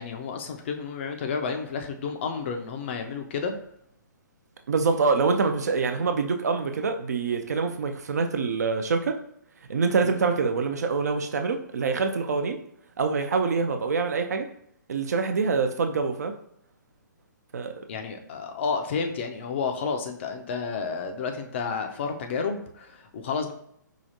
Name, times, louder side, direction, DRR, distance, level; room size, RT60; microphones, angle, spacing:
voice 1, 0.0-3.6 10.0-10.2 17.9-23.5, left 5 dB, 35° left, 5 dB, 0.5 m, -31 dB
voice 2, 4.7-9.2 9.7-12.6 13.0-14.5 14.9-16.3 17.5-17.7, right 4 dB, 55° right, 6 dB, 0.5 m, -25 dB
4.9 x 2.4 x 2.7 m, 0.72 s
figure-of-eight pair, 130°, 10 cm